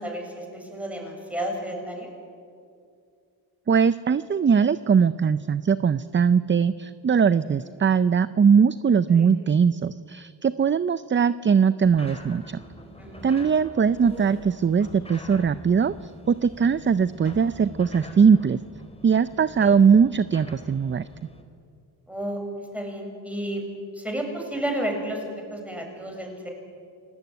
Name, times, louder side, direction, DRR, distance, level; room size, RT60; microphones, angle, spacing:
voice 1, 0.0-2.1 7.5-7.6 9.1-9.2 13.0-13.3 22.1-22.4 22.7-23.6 23.9-25.2 25.5-26.5, right 1 dB, 5° right, 1 dB, 7.2 m, -31 dB
voice 2, 3.7-12.6 13.2-18.6 19.0-21.1, right 6 dB, 25° right, 15 dB, 0.5 m, -20 dB
sound 1, 11.8-21.4, left 1 dB, 15° left, 3.9 m, -44 dB
29.5 x 18.0 x 9.4 m, 2.4 s
cardioid pair, 85°, 44 cm